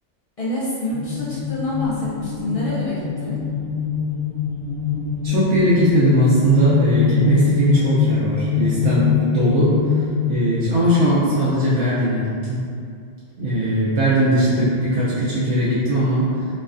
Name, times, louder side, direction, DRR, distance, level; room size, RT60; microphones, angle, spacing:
voice 1, 0.4-3.4, left 2 dB, 50° left, -9 dB, 0.4 m, -26 dB
sound 1, 0.9-10.4, left 7 dB, 85° left, 0.9 m, -23 dB
voice 2, 5.2-10.0 10.3-12.6 13.4-16.5, right 1 dB, 85° right, -10 dB, 1.0 m, -19 dB
3.1 x 2.2 x 2.4 m, 2.3 s
omnidirectional pair, 1.2 m